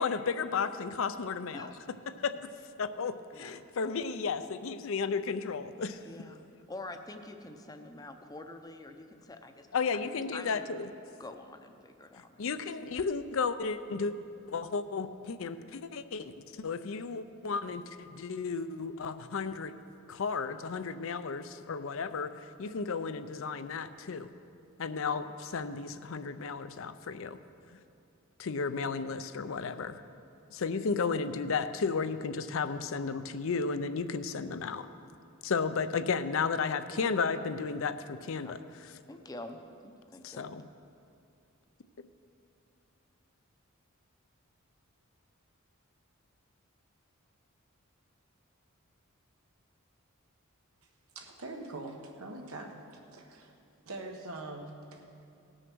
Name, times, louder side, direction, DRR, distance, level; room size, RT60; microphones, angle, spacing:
voice 1, 0.0-1.7 2.2-2.5 2.8-6.0 9.7-10.9 12.4-14.1 14.5-19.7 20.1-24.3 24.8-27.4 28.4-30.0 30.5-34.9 35.4-38.6 40.2-40.6, left 5 dB, 65° left, 11 dB, 0.5 m, -33 dB
voice 2, 1.5-2.0 3.3-3.6 6.0-9.7 10.0-10.6 11.2-12.6 38.4-38.5 39.1-40.5, left 2 dB, 20° left, 6 dB, 0.6 m, -46 dB
voice 3, 51.1-52.8 53.1-53.5 53.9-55.1, right 2 dB, 90° right, 2 dB, 1.4 m, -43 dB
17.5 x 6.4 x 6.1 m, 2.6 s
head